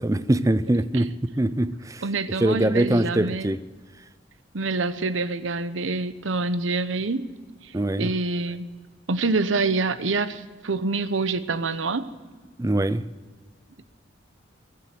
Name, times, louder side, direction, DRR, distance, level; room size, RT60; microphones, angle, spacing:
voice 1, 0.0-2.0 2.4-3.6 7.7-8.1 12.6-13.1, right 1 dB, 15° right, 0.5 m, -23 dB
voice 2, 2.0-3.5 4.5-7.3 8.0-8.7 9.1-12.1, right 3 dB, 85° right, 0.9 m, -26 dB
21.0 x 7.7 x 7.6 m
head